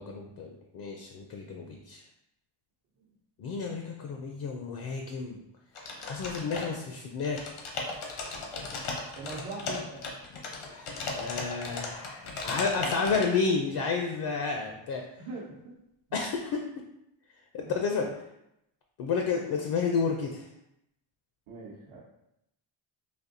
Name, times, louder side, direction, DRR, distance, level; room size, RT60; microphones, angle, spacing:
voice 1, 0.0-2.0 3.4-5.4 6.0-7.4 10.7-15.0 16.1-16.7 17.5-18.1 19.0-20.5, left 5 dB, 50° left, 2 dB, 0.5 m, -31 dB
sound 1, 5.7-6.9 7.2-13.3, left 3 dB, 80° left, 0.9 m, -36 dB
voice 2, 9.1-10.1 15.2-15.7 17.6-17.7 18.0-18.1 21.5-22.0, right 3 dB, 75° right, -5 dB, 0.9 m, -41 dB
4.1 x 2.6 x 2.6 m, 0.83 s
cardioid pair, 125°, 48 cm